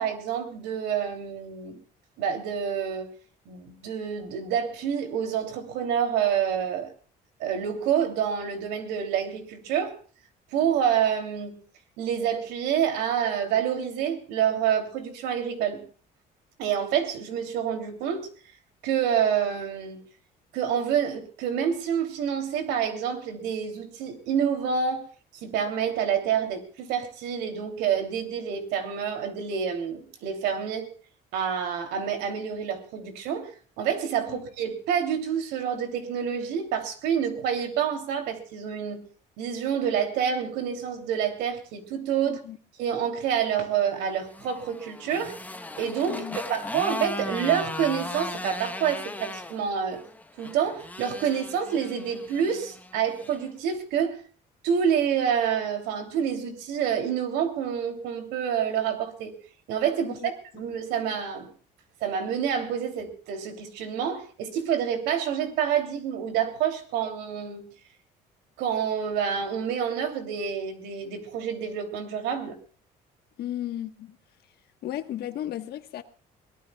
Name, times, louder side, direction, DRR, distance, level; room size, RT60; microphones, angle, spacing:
voice 1, 0.0-1.8 2.2-3.1 3.5-6.9 7.4-9.9 10.5-11.6 12.0-15.8 16.6-18.3 18.8-20.0 20.5-25.0 25.4-30.9 31.3-33.5 33.8-39.1 39.4-42.4 42.8-45.3 45.8-50.0 50.4-54.2 54.6-59.4 59.7-61.5 62.0-67.7 68.6-72.5, right 8 dB, 90° right, 3.1 m, -28 dB
voice 2, 42.3-42.6 46.1-46.4 60.0-60.3 73.4-74.2 74.8-76.0, left 12 dB, 70° left, 1.4 m, -34 dB
Motorcycle, 44.0-53.4, left 2 dB, 10° left, 1.1 m, -37 dB
23.0 x 18.0 x 2.4 m
cardioid pair, 110°, 17 cm